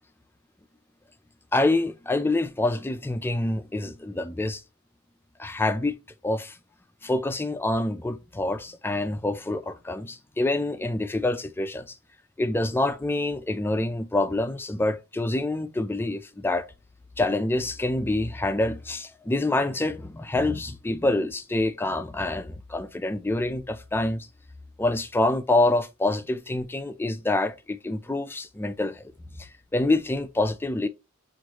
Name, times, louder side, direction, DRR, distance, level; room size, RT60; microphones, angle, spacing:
voice 1, 1.5-4.6 5.4-6.0 6.2-6.6 7.0-11.9 12.4-16.7 17.2-24.3 24.8-29.1 29.4-30.9, left 2 dB, 10° left, 0.4 m, -26 dB
6.2 x 2.5 x 2.9 m
head